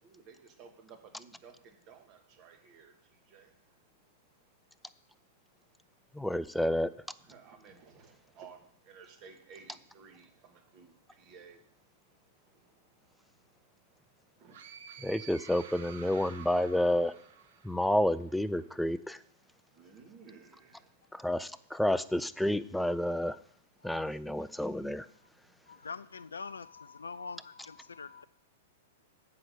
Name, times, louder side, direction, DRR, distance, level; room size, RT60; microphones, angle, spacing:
voice 1, 0.0-3.5 7.2-11.7 12.5-12.9 13.2-13.3 14.4-14.7 19.7-21.0, right 6 dB, 40° right, 1.9 m, -55 dB
voice 2, 6.1-6.9 15.0-17.1 17.6-19.2 21.1-23.4 23.8-25.1, left 1 dB, ahead, 0.4 m, -30 dB
sound 1, 14.5-18.2, right 7 dB, 60° right, 1.1 m, -50 dB
voice 3, 25.7-28.2, left 5 dB, 80° left, 0.3 m, -44 dB
7.8 x 5.8 x 6.8 m
figure-of-eight pair, 105°, 0 cm